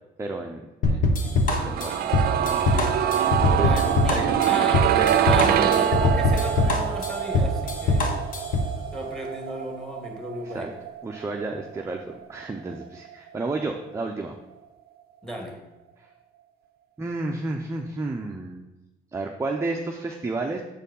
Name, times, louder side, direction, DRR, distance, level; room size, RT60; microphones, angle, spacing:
voice 1, 0.2-2.6 3.5-3.7 4.1-4.3 5.0-5.8 10.4-10.7 11.0-14.4 16.0-16.1 17.0-18.7 19.1-20.6, right 3 dB, 15° right, 2 dB, 0.7 m, -32 dB
sound 1, 0.8-8.7, left 2 dB, 55° left, 1.2 m, -23 dB
sound 2, 1.5-13.4 13.6-13.7, right 10 dB, 60° right, 0.6 m, -25 dB
voice 2, 3.6-8.1 8.9-10.7 15.2-15.6, equal, 5° left, 1 dB, 2.0 m, -34 dB
7.3 x 4.5 x 5.4 m, 1.0 s
cardioid pair, 110°, 17 cm